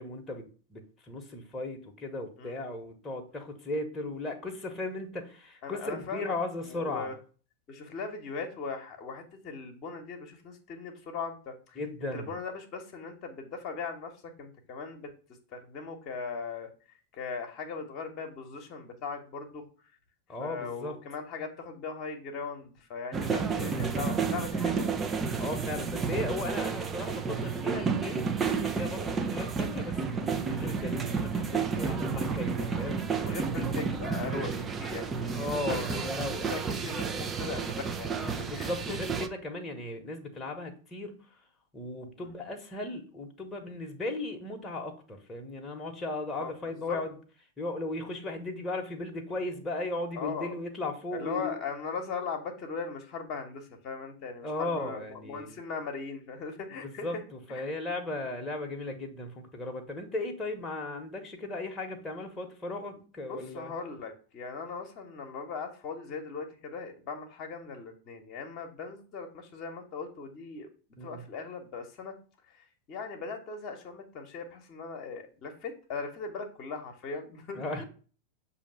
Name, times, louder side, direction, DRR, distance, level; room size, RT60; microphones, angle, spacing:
voice 1, 0.0-7.1 11.7-12.3 20.3-21.0 25.4-33.4 35.3-36.5 38.4-41.4 41.7-47.1 47.6-51.6 54.4-55.6 56.8-63.7 71.0-71.2 77.5-77.8, left 2 dB, 15° left, 1 dB, 1.2 m, -36 dB
voice 2, 5.6-6.3 6.8-7.1 7.7-11.8 12.1-15.1 15.5-19.7 20.4-24.9 32.6-32.8 33.1-39.0 42.2-42.3 46.4-46.5 46.9-47.0 50.2-50.5 51.1-57.1 57.5-57.6 63.3-70.7 71.0-72.1 72.5-77.6, left 5 dB, 40° left, 3 dB, 1.1 m, -39 dB
sound 1, 23.1-39.3, right 5 dB, 20° right, 0.6 m, -31 dB
6.9 x 2.8 x 5.4 m, 0.39 s
figure-of-eight pair, 90°, 0 cm